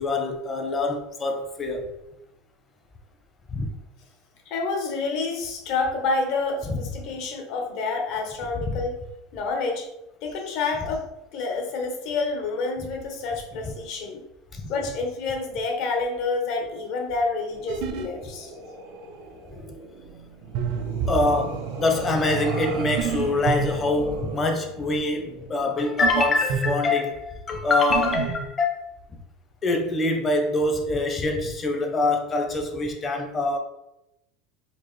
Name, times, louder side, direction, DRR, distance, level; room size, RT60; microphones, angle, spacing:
voice 1, 0.0-1.9 3.5-3.7 6.7-6.8 8.6-8.8 14.5-14.6 21.1-28.8 29.6-33.6, left 2 dB, 25° left, 4 dB, 0.7 m, -24 dB
voice 2, 4.5-9.0 9.3-9.9 10.2-14.2 14.7-18.5, left 3 dB, 60° left, 3 dB, 0.9 m, -28 dB
sound 1, 17.5-26.4, right 5 dB, 85° right, 0.9 m, -36 dB
sound 2, 17.7-18.1 20.5-21.2 23.0-23.7 26.0-26.7 27.9-28.5, right 8 dB, 65° right, 0.5 m, -27 dB
4.3 x 2.6 x 3.1 m, 0.88 s
supercardioid pair, 130°, 0 cm